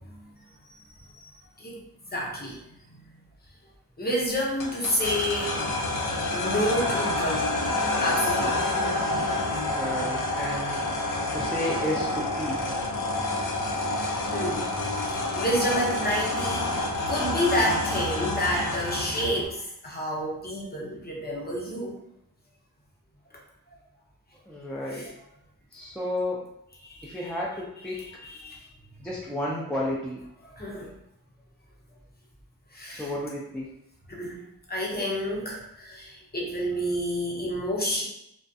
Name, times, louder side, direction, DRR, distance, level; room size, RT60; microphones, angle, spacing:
voice 1, 2.1-2.6 2.9-3.0 4.0-6.0 6.3-7.5 8.0-8.9 13.8-14.0 14.3-14.7 15.4-22.0 24.9-25.1 26.8-27.2 27.9-28.6 30.4-30.9 32.7-33.1 34.1-34.4 34.7-38.0, equal, 25° left, -3 dB, 0.8 m, -29 dB
sound 1, 4.6-19.4, left 2 dB, 55° left, 0.5 m, -28 dB
voice 2, 9.7-10.8 11.3-12.8 24.5-25.1 25.7-26.4 27.0-28.0 29.0-30.2 32.9-33.7, left 1 dB, 5° left, -5 dB, 0.5 m, -32 dB
2.5 x 2.2 x 2.6 m, 0.78 s
cardioid pair, 55°, 39 cm